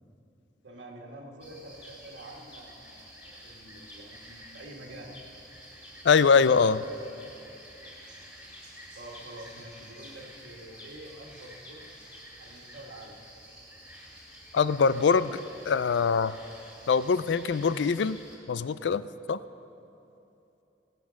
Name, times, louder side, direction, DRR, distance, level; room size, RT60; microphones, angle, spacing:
voice 1, 0.6-5.2 8.9-11.9 12.4-13.2, right 1 dB, 90° right, 0 dB, 1.7 m, -47 dB
sound 1, 1.4-18.4, equal, 10° right, 3.7 m, -49 dB
voice 2, 6.0-6.8 14.5-15.4 15.7-16.4 16.9-18.2 18.5-19.4, left 5 dB, 70° left, 15 dB, 0.4 m, -23 dB
18.5 x 8.4 x 6.3 m, 2.9 s
head